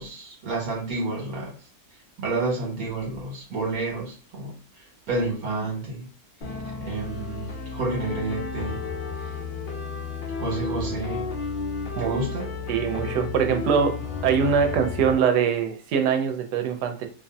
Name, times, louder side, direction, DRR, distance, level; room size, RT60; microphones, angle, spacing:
voice 1, 0.0-1.6 2.2-6.1 6.8-8.8 10.4-11.3 12.0-12.6, right 3 dB, 65° right, -2 dB, 1.4 m, -30 dB
sound 1, 6.4-15.2, left 4 dB, 60° left, 0.5 m, -32 dB
voice 2, 12.7-14.0 14.2-17.1, right 7 dB, 90° right, 6 dB, 1.1 m, -23 dB
2.7 x 2.5 x 2.2 m, 0.39 s
omnidirectional pair, 1.7 m